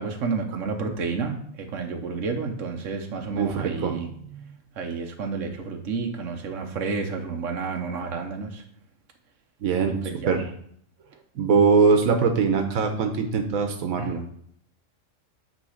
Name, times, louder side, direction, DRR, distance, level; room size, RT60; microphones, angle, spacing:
voice 1, 0.0-4.1 4.7-8.6 9.9-10.4 14.0-14.1, right 4 dB, 70° right, 3 dB, 1.3 m, -30 dB
voice 2, 3.4-4.0 4.3-4.4 9.6-10.0 10.3-10.4 11.3-14.2, right 5 dB, 90° right, 5 dB, 1.4 m, -22 dB
9.0 x 3.2 x 6.4 m, 0.67 s
omnidirectional pair, 1.4 m